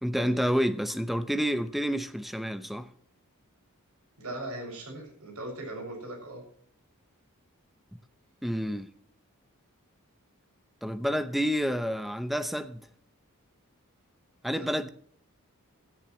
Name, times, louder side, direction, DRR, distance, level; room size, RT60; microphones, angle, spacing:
voice 1, 0.0-2.9 8.4-8.9 10.8-12.9 14.4-14.9, equal, ahead, 0.8 m, -29 dB
voice 2, 4.2-6.4 14.5-14.7, right 1 dB, 75° right, 6.4 m, -39 dB
16.5 x 13.5 x 3.1 m
head